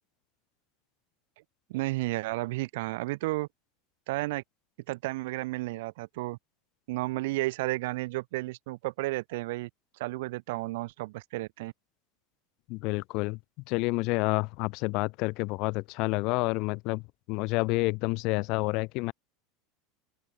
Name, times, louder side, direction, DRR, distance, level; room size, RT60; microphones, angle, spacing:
voice 1, 1.7-3.5 4.1-4.4 4.9-6.4 6.9-9.7 10.0-11.7, right 20 dB, 70° right, 5.4 m, -32 dB
voice 2, 12.7-13.4 13.7-17.0 17.3-19.1, left 26 dB, 50° left, 2.6 m, -29 dB
open air
supercardioid pair, 150°, 0 cm